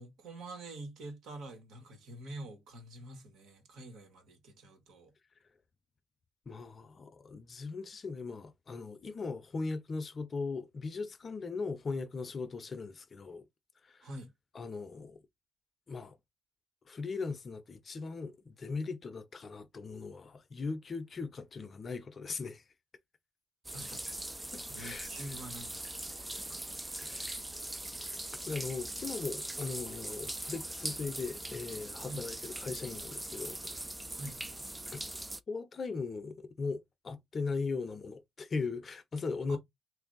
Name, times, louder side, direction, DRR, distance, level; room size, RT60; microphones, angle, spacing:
voice 1, 0.0-5.1 14.0-14.3 23.7-24.1 24.7-26.3 32.0-32.3 34.1-34.4 39.5-39.6, right 1 dB, 80° right, 1.5 m, -46 dB
voice 2, 6.5-13.5 13.8-14.1 14.5-15.2 15.9-16.2 16.9-22.6 24.5-25.1 27.0-27.3 28.5-33.9 34.9-35.0 35.5-39.6, left 4 dB, 40° left, 0.6 m, -39 dB
sound 1, 23.6-35.4, right 1 dB, 10° right, 0.3 m, -41 dB
3.3 x 2.6 x 3.9 m
cardioid pair, 90°, 0 cm